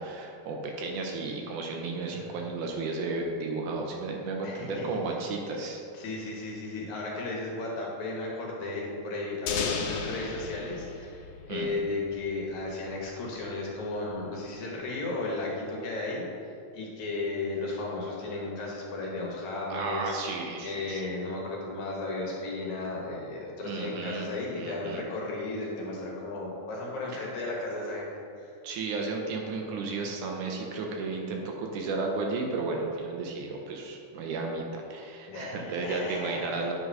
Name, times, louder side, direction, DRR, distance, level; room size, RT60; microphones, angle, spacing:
voice 1, 0.0-5.8 11.5-11.7 19.7-21.1 23.6-24.3 24.6-25.0 27.1-27.2 28.6-36.7, right 3 dB, 80° right, 1 dB, 2.2 m, -33 dB
voice 2, 2.0-2.4 4.4-5.0 5.9-16.3 16.7-20.4 20.6-28.1 28.4-28.6 35.3-36.5, left 2 dB, 65° left, -3 dB, 2.5 m, -34 dB
sound 1, 9.5-12.2, left 5 dB, 90° left, 2.4 m, -35 dB
9.5 x 3.8 x 5.5 m, 2.5 s
omnidirectional pair, 3.8 m